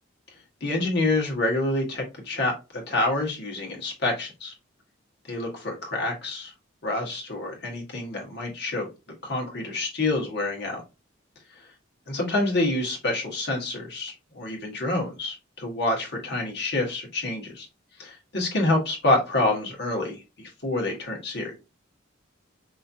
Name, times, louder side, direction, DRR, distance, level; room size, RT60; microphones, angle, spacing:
voice 1, 0.6-4.5 5.3-6.5 6.8-8.9 9.2-10.8 12.1-17.7 18.0-21.5, left 2 dB, 55° left, 0 dB, 1.6 m, -27 dB
5.5 x 2.8 x 2.6 m, 0.27 s
head